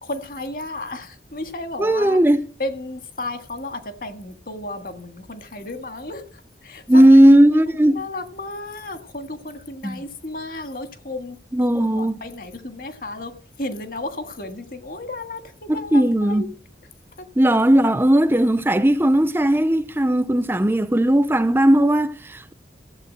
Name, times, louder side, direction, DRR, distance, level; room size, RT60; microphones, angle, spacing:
voice 1, 0.0-2.2 2.6-6.2 6.6-7.2 7.8-11.4 11.7-13.3 13.6-16.5, left 2 dB, 50° left, 1.7 m, -33 dB
voice 2, 1.8-2.5 6.9-8.0 9.8-10.0 11.5-12.2 15.7-16.4 17.4-22.5, right 1 dB, 10° right, 0.5 m, -16 dB
15.0 x 8.1 x 7.6 m
head